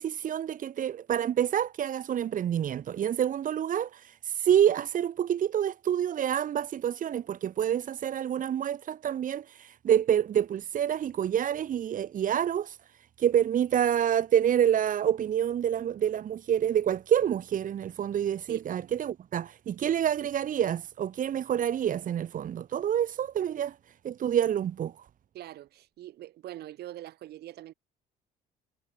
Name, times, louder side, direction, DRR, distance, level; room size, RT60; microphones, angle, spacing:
voice 1, 0.0-12.8 13.2-23.7 24.0-24.9, right 10 dB, 50° right, 3.4 m, -27 dB
voice 2, 18.5-18.9 25.3-27.7, right 14 dB, 70° right, 6.9 m, -44 dB
cardioid pair, 110°, 17 cm